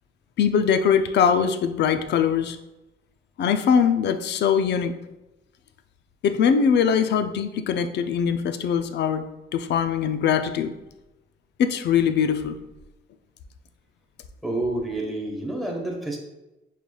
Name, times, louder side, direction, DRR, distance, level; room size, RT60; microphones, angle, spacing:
voice 1, 0.4-2.6 3.4-4.9 6.2-9.2 9.5-10.7 11.6-12.6, left 7 dB, 60° left, 8 dB, 0.4 m, -22 dB
voice 2, 14.4-16.2, right 2 dB, ahead, -1 dB, 1.1 m, -28 dB
5.4 x 3.2 x 2.3 m, 1.0 s
cardioid pair, 90°, 20 cm